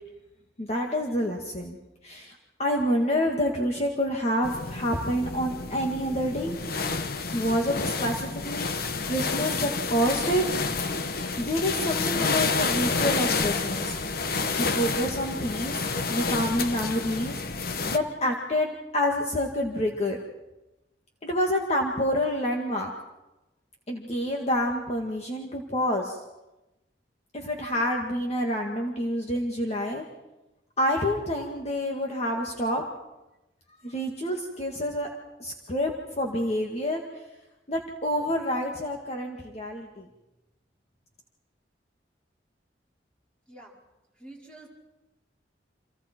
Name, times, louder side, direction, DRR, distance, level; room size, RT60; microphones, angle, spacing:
voice 1, 0.6-2.3 2.6-6.6 7.3-10.4 11.4-14.0 14.6-15.8 16.1-17.4 17.9-20.2 21.2-22.9 23.9-26.2 27.3-30.0 30.8-32.8 33.8-35.1 35.4-37.0 37.7-40.1, equal, 40° left, 1 dB, 2.0 m, -28 dB
sound 1, 4.4-18.0, left 4 dB, 55° left, 1.2 m, -29 dB
voice 2, 44.2-44.7, right 2 dB, 5° left, -2 dB, 5.0 m, -47 dB
29.0 x 26.5 x 4.6 m, 1.0 s
head